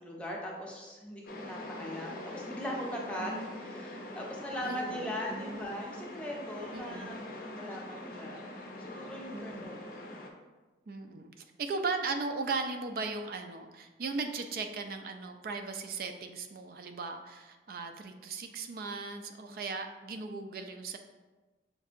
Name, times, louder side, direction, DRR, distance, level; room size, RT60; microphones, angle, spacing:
voice 1, 0.0-8.4 8.8-10.0, equal, 5° left, -2 dB, 0.6 m, -40 dB
sound 1, 1.3-10.3, left 1 dB, 50° left, 0.5 m, -43 dB
voice 2, 3.2-3.6 4.6-5.0 5.3-5.8 6.7-7.1 9.3-9.8 10.9-11.3 11.6-21.0, right 4 dB, 50° right, 6 dB, 0.3 m, -37 dB
6.4 x 2.6 x 2.5 m, 1.2 s
head